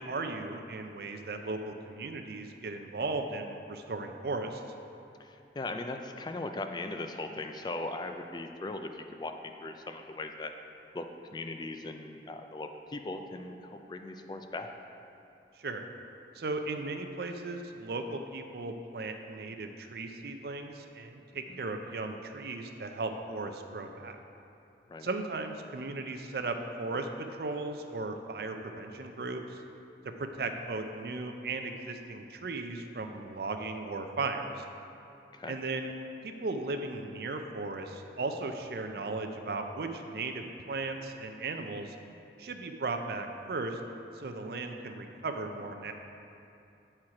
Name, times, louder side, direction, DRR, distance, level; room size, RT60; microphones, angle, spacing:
voice 1, 0.0-4.6 15.6-15.8 16.3-24.2 25.0-27.1 27.4-29.6 30.2-34.6 35.5-35.9 36.2-42.0 42.4-43.8 44.1-45.9, right 3 dB, 60° right, 5 dB, 0.5 m, -36 dB
voice 2, 5.2-9.3 9.6-10.5 10.9-14.7 21.5-21.6 24.9-25.1 35.3-35.5, left 2 dB, 25° left, 6 dB, 0.3 m, -39 dB
7.8 x 4.4 x 4.8 m, 2.7 s
head